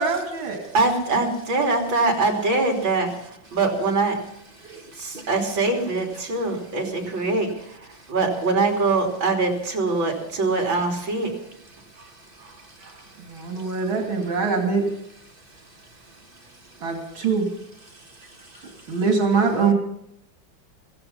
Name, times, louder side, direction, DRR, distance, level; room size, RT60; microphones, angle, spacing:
voice 1, 0.0-0.6 13.2-14.9 16.8-17.5 18.9-19.7, right 4 dB, 85° right, 2 dB, 3.4 m, -23 dB
voice 2, 0.7-3.1 3.5-4.2 5.0-7.5 8.1-11.3 12.8-12.9, right 3 dB, 70° right, 2 dB, 3.9 m, -23 dB
voice 3, 2.8-3.6 4.3-5.4 5.8-8.1 10.0-10.6 11.0-19.1, right 2 dB, 30° right, 4 dB, 1.6 m, -51 dB
15.5 x 15.5 x 5.5 m, 0.75 s
omnidirectional pair, 2.2 m